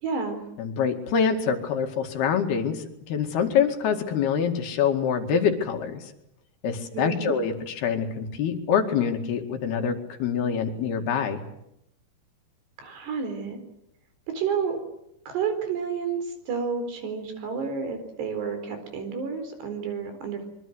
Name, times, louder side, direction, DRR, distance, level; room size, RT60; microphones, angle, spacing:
voice 1, 0.0-0.4 6.9-7.3 12.8-13.6 14.3-14.8 15.3-20.4, right 6 dB, 85° right, 8 dB, 6.4 m, -30 dB
voice 2, 0.6-6.1 6.6-11.4, left 7 dB, 75° left, 5 dB, 4.2 m, -25 dB
25.0 x 23.5 x 8.0 m, 0.83 s
omnidirectional pair, 4.7 m